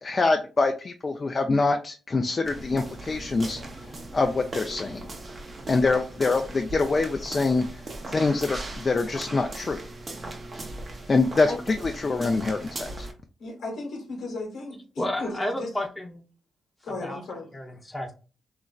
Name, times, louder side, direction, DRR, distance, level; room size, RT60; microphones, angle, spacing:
voice 1, 0.0-3.6 4.1-5.1 5.7-7.7 8.1-9.8 11.1-13.1, left 3 dB, 40° left, 5 dB, 0.3 m, -25 dB
sound 1, 2.4-13.1, right 2 dB, 40° right, 0.6 m, -38 dB
voice 2, 13.4-15.7 16.8-17.5, left 2 dB, 75° left, 0 dB, 1.1 m, -35 dB
voice 3, 15.0-16.2 17.0-17.2 17.5-18.1, left 1 dB, 15° left, 2 dB, 0.7 m, -31 dB
3.0 x 2.5 x 2.2 m, 0.35 s
supercardioid pair, 55°, 0 cm